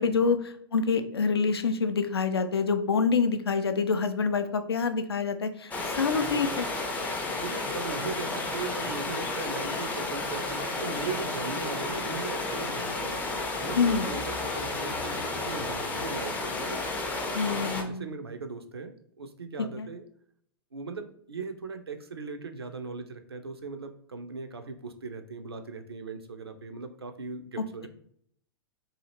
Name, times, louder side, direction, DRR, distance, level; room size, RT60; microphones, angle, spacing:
voice 1, 0.0-6.7 13.7-14.1 17.3-18.1 19.6-19.9 27.6-27.7, left 5 dB, 75° left, 9 dB, 0.4 m, -26 dB
sound 1, 5.7-17.8, left 2 dB, 10° left, 0.4 m, -32 dB
voice 2, 7.4-13.2 13.6-16.8 17.4-20.0 20.7-27.9, right 4 dB, 80° right, 7 dB, 0.4 m, -39 dB
2.7 x 2.4 x 2.8 m, 0.65 s
figure-of-eight pair, 100°, 13 cm